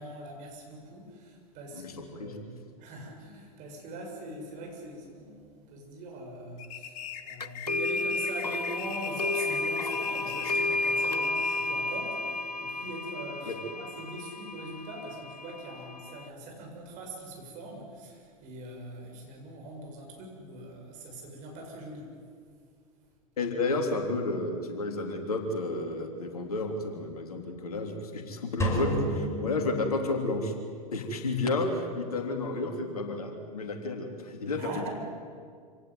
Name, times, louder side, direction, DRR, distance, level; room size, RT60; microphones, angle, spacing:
voice 1, 0.0-2.5 2.8-22.2 34.6-34.9, right 1 dB, 40° right, 1 dB, 7.3 m, -42 dB
voice 2, 1.7-2.3 13.5-13.6 23.4-30.5 30.9-34.6, left 2 dB, 70° left, 4 dB, 3.4 m, -31 dB
sound 1, 6.6-11.9, left 10 dB, 40° left, 1.8 m, -41 dB
sound 2, 7.4-16.3, left 3 dB, 90° left, 0.5 m, -32 dB
sound 3, 28.6-30.6, equal, 15° left, 5.8 m, -31 dB
26.5 x 17.5 x 9.7 m, 2.1 s
figure-of-eight pair, 90°, 20 cm